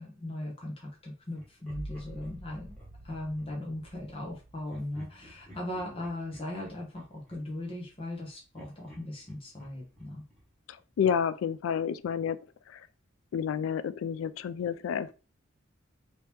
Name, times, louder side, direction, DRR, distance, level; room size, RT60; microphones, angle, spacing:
voice 1, 0.0-2.7 3.0-10.2, left 1 dB, 30° left, 0.9 m, -38 dB
Laughter, 1.4-3.5 4.7-8.2 8.5-11.3, equal, 5° left, 1.4 m, -56 dB
sound 1, 1.7-7.1 7.6-8.2, right 1 dB, 60° right, 0.5 m, -49 dB
voice 2, 11.0-12.4 12.7-12.8 13.3-15.1, left 7 dB, 80° left, 0.3 m, -29 dB
2.9 x 2.9 x 3.3 m
head